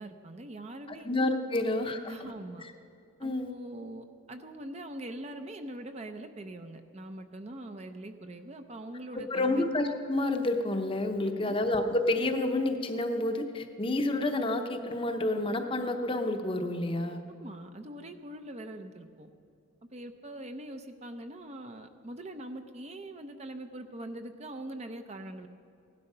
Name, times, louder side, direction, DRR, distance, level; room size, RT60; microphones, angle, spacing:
voice 1, 0.0-1.1 1.5-1.7 2.1-2.7 3.2-9.7 11.2-11.6 17.4-19.3 19.9-25.5, right 1 dB, 30° right, 7 dB, 0.6 m, -43 dB
voice 2, 0.9-2.3 3.2-3.5 9.3-17.2, left 2 dB, 25° left, 6 dB, 0.8 m, -29 dB
16.5 x 11.5 x 5.5 m, 2.6 s
head